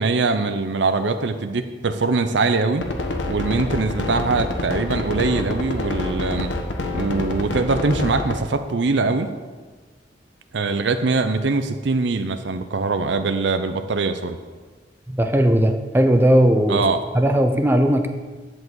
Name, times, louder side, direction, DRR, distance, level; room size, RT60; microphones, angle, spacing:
voice 1, 0.0-2.9 3.3-6.5 6.9-9.3 10.5-14.4 16.7-17.0, right 3 dB, 75° right, 9 dB, 0.6 m, -22 dB
sound 1, 2.8-8.4, left 2 dB, 80° left, 1.3 m, -26 dB
voice 2, 15.1-16.8 17.1-18.1, right 1 dB, 10° right, 6 dB, 0.6 m, -17 dB
11.0 x 4.8 x 7.9 m, 1.4 s
head